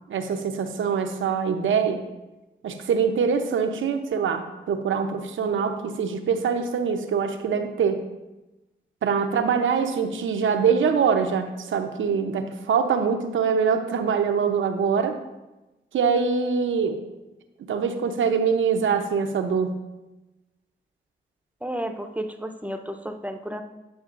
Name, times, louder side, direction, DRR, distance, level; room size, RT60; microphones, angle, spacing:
voice 1, 0.1-2.0 2.6-8.0 9.0-15.2 15.9-17.0 17.7-19.7, right 6 dB, 80° right, 7 dB, 0.8 m, -24 dB
voice 2, 21.6-23.6, right 1 dB, 5° right, 6 dB, 0.7 m, -32 dB
9.3 x 6.3 x 2.5 m, 1.0 s
supercardioid pair, 45°, 20 cm